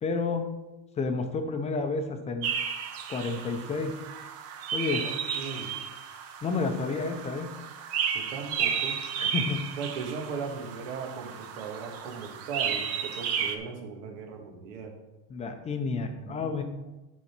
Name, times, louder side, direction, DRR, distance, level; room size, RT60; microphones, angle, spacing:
voice 1, 0.0-0.5 1.0-2.5 3.1-4.0 4.7-5.0 6.4-7.5 9.2-9.6 15.3-16.6, left 4 dB, 20° left, 6 dB, 0.6 m, -30 dB
sound 1, 2.4-13.6, right 7 dB, 45° right, 1.0 m, -33 dB
voice 2, 4.9-5.7 8.1-9.0 9.8-15.0 16.2-16.6, right 5 dB, 85° right, 2 dB, 2.1 m, -38 dB
10.5 x 4.1 x 5.9 m, 1.1 s
cardioid pair, 160°, 35 cm